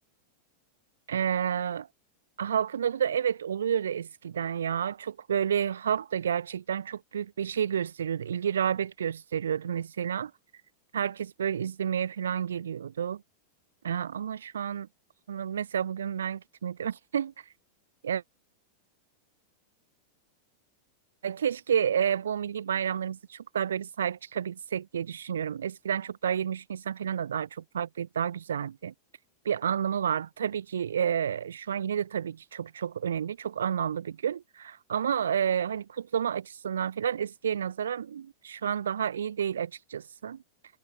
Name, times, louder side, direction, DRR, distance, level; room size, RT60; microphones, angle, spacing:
voice 1, 1.1-1.9 2.4-10.3 10.9-13.2 13.8-14.9 15.3-17.3 18.0-18.2 21.2-28.9 29.5-40.4, right 8 dB, 85° right, 1.6 m, -30 dB
hypercardioid pair, 105°, 0 cm